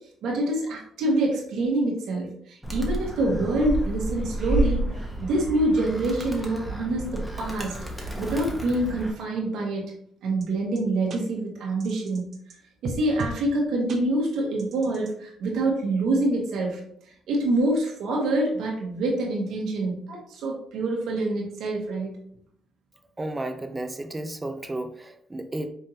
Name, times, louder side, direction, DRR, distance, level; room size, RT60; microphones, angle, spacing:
voice 1, 0.2-9.9 10.2-12.3 12.8-16.8 17.3-22.1, right 1 dB, 80° right, -1 dB, 1.4 m, -26 dB
Animal, 2.6-9.1, right 2 dB, 5° left, 1.1 m, -30 dB
sound 1, 10.4-10.5 10.8-10.9 11.1-11.2 11.8-12.6 12.8-13.4 13.9-14.0 14.6-15.1, right 3 dB, 60° right, 0.7 m, -36 dB
voice 2, 23.2-25.7, right 1 dB, 20° right, 8 dB, 0.6 m, -33 dB
5.2 x 3.6 x 2.8 m, 0.67 s
cardioid pair, 90°, 0 cm